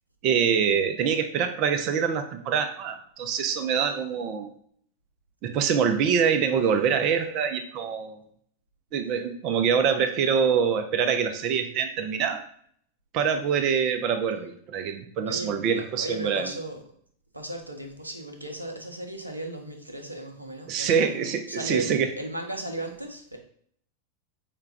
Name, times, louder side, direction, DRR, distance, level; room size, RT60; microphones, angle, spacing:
voice 1, 0.2-4.5 5.4-8.2 8.9-12.4 13.1-16.5 20.7-22.1, right 7 dB, 40° right, 8 dB, 0.5 m, -25 dB
voice 2, 15.3-16.8 17.3-23.4, right 1 dB, 85° right, 4 dB, 0.6 m, -36 dB
4.7 x 2.3 x 3.4 m, 0.63 s
figure-of-eight pair, 90°, 0 cm